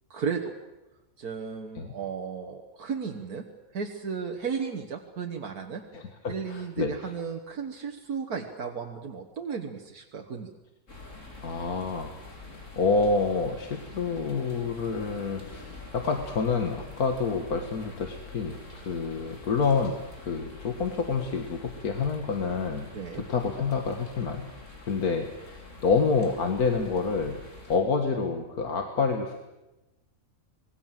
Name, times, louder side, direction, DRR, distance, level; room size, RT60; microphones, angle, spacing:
voice 1, 0.1-0.5 1.2-3.5 3.7-5.8 6.3-10.5 22.9-23.2, right 6 dB, 80° right, 3 dB, 2.0 m, -34 dB
voice 2, 5.9-7.1 11.4-12.1 12.8-18.6 18.9-22.9 23.1-24.5 24.9-27.4 27.7-29.4, left 4 dB, 80° left, 4 dB, 2.2 m, -28 dB
sound 1, 10.9-27.8, left 3 dB, 55° left, 4.2 m, -46 dB
26.0 x 21.0 x 7.6 m, 1.0 s
omnidirectional pair, 1.6 m